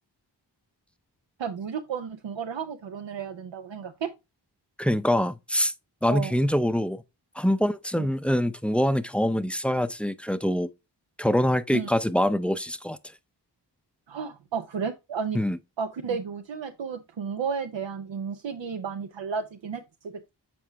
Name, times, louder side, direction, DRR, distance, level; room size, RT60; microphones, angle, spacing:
voice 1, 1.4-4.1 6.1-6.3 8.0-8.1 11.7-11.9 14.1-15.4 15.8-20.3, right 6 dB, 85° right, 0.6 m, -33 dB
voice 2, 4.8-5.7 6.0-7.0 7.4-10.7 11.2-13.0 15.3-15.6, equal, 5° left, 0.5 m, -24 dB
7.7 x 4.5 x 3.3 m
wide cardioid pair, 50°, 44 cm